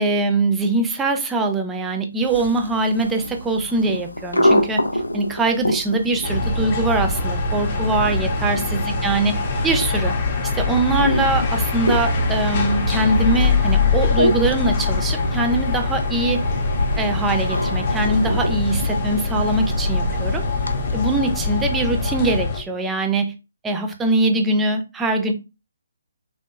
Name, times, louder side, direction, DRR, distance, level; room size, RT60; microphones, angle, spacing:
voice 1, 0.0-4.8 5.1-10.1 10.5-16.4 17.0-20.4 20.9-23.3 23.6-25.3, right 2 dB, 10° right, 4 dB, 0.4 m, -22 dB
sound 1, 2.2-21.5, left 1 dB, 85° left, 0.4 m, -28 dB
sound 2, 6.2-22.6, left 3 dB, 35° left, 0.6 m, -23 dB
2.9 x 2.0 x 2.3 m, 0.28 s
figure-of-eight pair, 140°, 0 cm